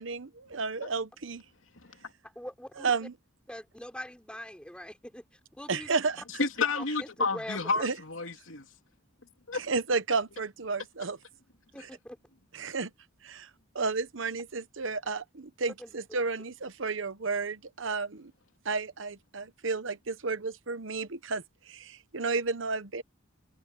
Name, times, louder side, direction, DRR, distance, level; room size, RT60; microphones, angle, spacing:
voice 1, 0.0-1.4 2.8-3.1 5.7-6.2 7.8-7.9 9.7-11.2 11.8-11.9 12.5-12.9 13.2-13.5 13.7-18.3 18.6-23.0, right 4 dB, 70° right, 1.0 m, -32 dB
voice 2, 1.7-2.1 6.4-8.7 9.5-9.6, left 4 dB, 75° left, 2.9 m, -31 dB
voice 3, 2.4-2.9 3.5-5.2 5.6-6.0 7.0-7.7 11.7-12.2 15.8-16.0, equal, 5° left, 4.0 m, -42 dB
head